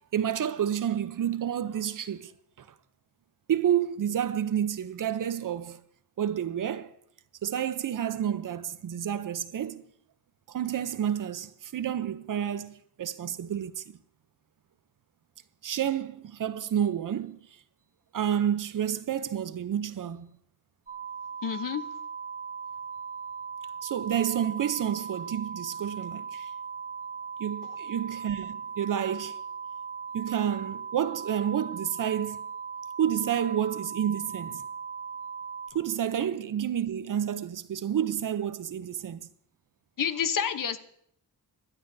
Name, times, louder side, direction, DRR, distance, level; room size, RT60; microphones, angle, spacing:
voice 1, 0.1-2.3 2.6-2.7 3.5-5.8 6.2-6.9 7.4-9.8 10.5-14.0 15.6-17.4 18.1-20.3 23.8-26.5 27.4-29.4 30.1-32.5 33.0-34.6 35.7-39.2, right 9 dB, 55° right, 0.7 m, -29 dB
sound 1, 20.9-35.7, right 6 dB, 20° right, 2.7 m, -38 dB
voice 2, 21.4-21.8 40.0-40.8, left 8 dB, 55° left, 0.9 m, -28 dB
26.0 x 11.5 x 2.7 m
wide cardioid pair, 135°, 38 cm